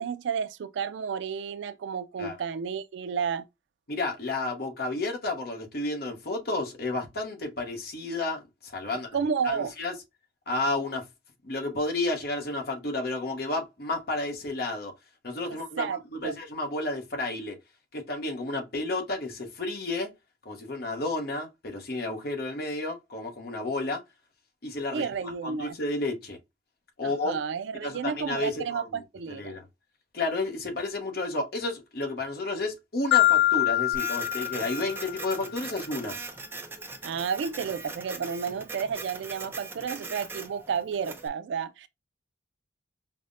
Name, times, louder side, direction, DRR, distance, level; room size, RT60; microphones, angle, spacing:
voice 1, 0.0-3.4 9.1-9.7 15.8-16.3 24.9-25.8 27.0-29.6 37.0-41.9, right 6 dB, 75° right, 0.3 m, -31 dB
voice 2, 3.9-9.2 9.4-9.9 10.5-11.1 11.4-14.9 15.2-17.6 17.9-20.1 20.4-24.0 24.6-26.4 27.0-27.4 27.8-29.0 29.4-29.6 30.1-36.2, left 2 dB, 55° left, 0.8 m, -31 dB
Marimba xylophone, 33.1-35.3, left 15 dB, 90° left, 0.4 m, -24 dB
Printer, 33.9-41.3, right 4 dB, 10° right, 0.4 m, -40 dB
5.3 x 2.1 x 2.4 m
head